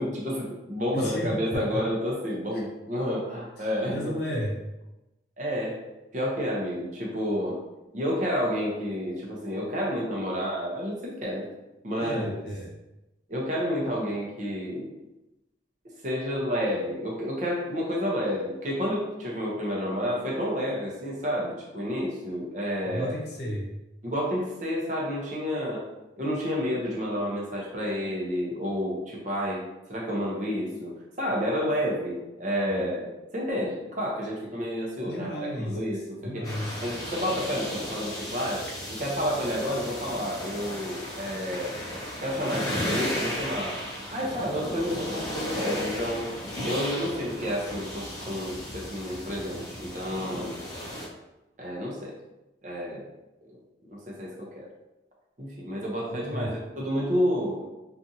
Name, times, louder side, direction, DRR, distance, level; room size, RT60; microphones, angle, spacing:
voice 1, 0.0-4.1 5.4-5.9 6.1-7.6 7.9-11.5 11.8-12.4 13.3-14.9 16.0-23.1 24.0-25.9 26.2-29.6 29.9-36.4 36.8-41.8 42.2-43.8 44.1-46.3 46.6-50.6 51.6-52.1 52.6-53.1 53.5-53.6 53.9-54.7 55.4-57.7, equal, 40° right, -3 dB, 0.6 m, -30 dB
voice 2, 0.9-1.9 2.5-2.6 3.6-4.6 12.0-12.7 22.8-23.7 32.6-32.8 35.0-36.8 56.3-56.5, equal, 60° left, -3 dB, 0.7 m, -33 dB
sound 1, 36.4-51.1, left 1 dB, 20° left, 0.5 m, -35 dB
2.6 x 2.4 x 2.6 m, 0.97 s
head